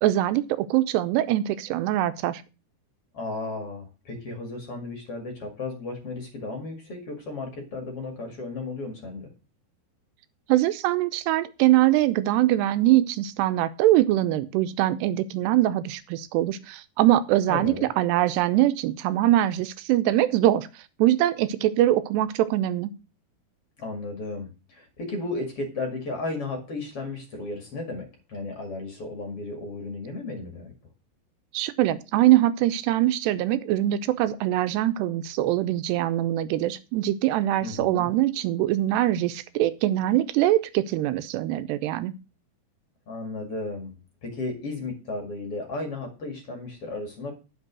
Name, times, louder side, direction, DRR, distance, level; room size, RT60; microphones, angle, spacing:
voice 1, 0.0-2.4 10.5-20.7 21.0-22.9 31.5-42.1, right 14 dB, 85° right, 13 dB, 2.8 m, -23 dB
voice 2, 3.1-9.3 17.5-17.9 23.8-30.7 37.6-38.1 43.1-43.9 44.2-47.3, left 2 dB, 40° left, 4 dB, 2.5 m, -34 dB
11.0 x 6.1 x 6.1 m, 0.31 s
omnidirectional pair, 4.8 m